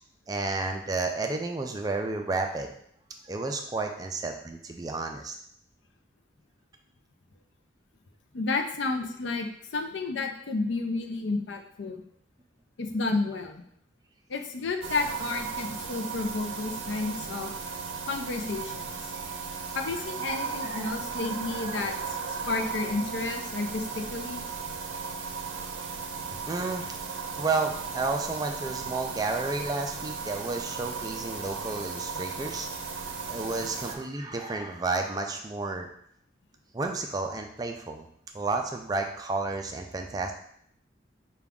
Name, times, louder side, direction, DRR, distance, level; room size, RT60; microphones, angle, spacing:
voice 1, 0.3-2.7 3.2-5.3 20.2-20.4 20.6-20.9 21.5-21.9 26.5-26.9 27.4-32.7 32.9-35.9 36.7-38.1 38.3-40.3, right 3 dB, 20° right, 3 dB, 0.3 m, -31 dB
voice 2, 8.3-12.0 12.8-13.6 14.3-17.5 18.1-18.9 19.7-24.4, left 3 dB, 75° left, 5 dB, 0.5 m, -31 dB
sound 1, 14.8-33.9, right 5 dB, 90° right, 0.5 m, -36 dB
4.9 x 2.3 x 3.5 m, 0.69 s
head